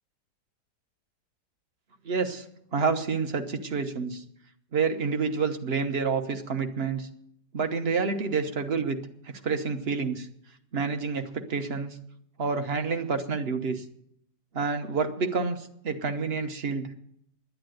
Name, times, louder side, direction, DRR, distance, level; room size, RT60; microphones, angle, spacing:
voice 1, 2.0-2.4 2.7-4.2 4.7-7.1 7.5-9.0 9.4-10.3 10.7-12.0 12.4-13.8 14.5-16.9, right 5 dB, 40° right, 7 dB, 1.1 m, -28 dB
10.5 x 10.5 x 7.8 m, 0.72 s
omnidirectional pair, 1.8 m